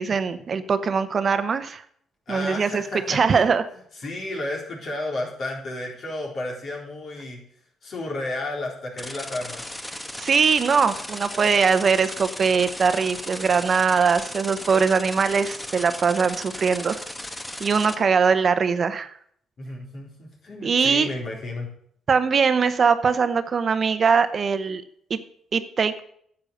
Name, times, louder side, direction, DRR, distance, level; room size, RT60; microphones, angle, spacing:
voice 1, 0.0-1.8 2.3-2.8 3.1-3.6 10.1-17.0 17.6-19.1 20.6-21.1 22.1-24.8 25.1-25.2 25.5-26.0, right 5 dB, 45° right, 11 dB, 0.8 m, -21 dB
voice 2, 2.3-3.4 3.9-7.4 7.8-9.7 19.6-21.7, left 2 dB, 55° left, -1 dB, 3.9 m, -32 dB
sound 1, 9.0-17.9, left 1 dB, 15° left, 1.2 m, -36 dB
10.0 x 8.3 x 6.5 m, 0.65 s
cardioid pair, 90°, 0 cm